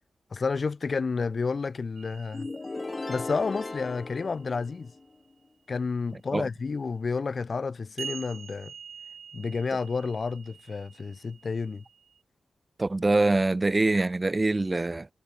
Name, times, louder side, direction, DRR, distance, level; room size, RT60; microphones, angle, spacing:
voice 1, 0.3-2.5 3.1-4.9 5.7-8.7 9.3-11.8, left 4 dB, 40° left, 0.6 m, -30 dB
sound 1, 2.0-5.1 8.0-12.2, right 7 dB, 80° right, 2.1 m, -46 dB
sound 2, 2.3-5.2, left 3 dB, 25° left, 3.6 m, -37 dB
voice 2, 12.8-15.1, right 2 dB, 20° right, 0.5 m, -24 dB
wide cardioid pair, 165°, 0 cm